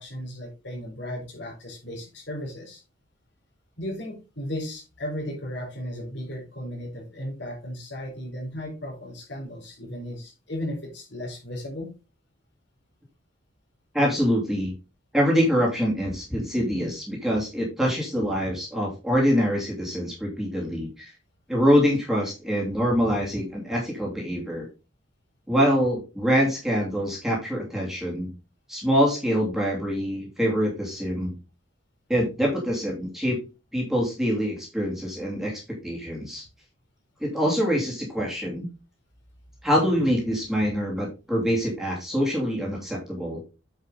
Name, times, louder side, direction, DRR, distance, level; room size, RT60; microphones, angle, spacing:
voice 1, 0.0-2.8 3.8-11.9, left 1 dB, 60° left, -2 dB, 4.5 m, -35 dB
voice 2, 13.9-14.7 15.1-21.1 21.5-24.7 25.5-28.3 28.7-31.3 32.1-33.4 33.7-36.4 37.2-38.7 39.6-43.4, equal, ahead, -4 dB, 2.7 m, -25 dB
8.9 x 5.6 x 3.9 m, 0.29 s
head